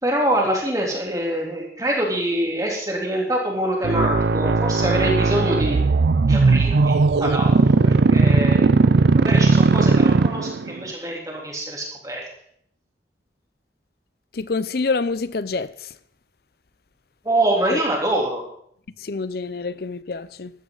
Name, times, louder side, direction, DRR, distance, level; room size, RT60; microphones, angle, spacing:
voice 1, 0.0-5.8 6.3-6.9 7.2-7.6 7.8-8.7 9.2-12.3 17.2-18.4, right 1 dB, 20° right, 3.4 m, -24 dB
sound 1, 3.8-10.8, right 3 dB, 65° right, 0.5 m, -17 dB
voice 2, 14.3-15.9 17.7-17.8 19.0-20.5, left 4 dB, 55° left, 0.6 m, -27 dB
14.5 x 12.5 x 4.0 m
head